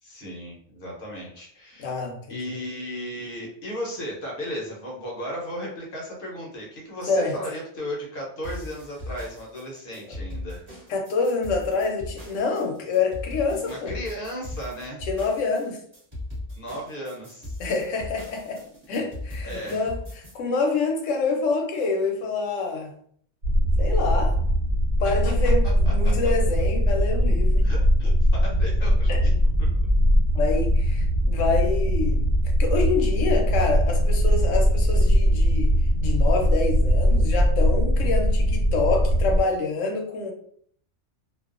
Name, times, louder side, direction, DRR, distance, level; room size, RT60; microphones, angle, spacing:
voice 1, 0.0-1.9 2.3-10.7 13.5-15.0 16.5-17.6 19.4-19.8 25.0-25.3 25.8-26.1 27.6-29.3 29.8-29.9, equal, 55° left, -3 dB, 0.8 m, -35 dB
voice 2, 1.8-2.5 7.1-7.3 10.9-13.9 15.0-15.8 17.6-18.6 18.9-20.0 20.3-22.9 23.8-24.4 25.0-27.7 29.1-29.2 30.3-32.3 32.6-35.7 36.0-40.3, left 4 dB, 90° left, 2 dB, 1.0 m, -26 dB
sound 1, 8.4-20.3, left 1 dB, 25° right, 1.0 m, -38 dB
sound 2, 23.4-39.4, equal, 85° right, 1.1 m, -21 dB
2.4 x 2.3 x 2.4 m, 0.62 s
omnidirectional pair, 1.3 m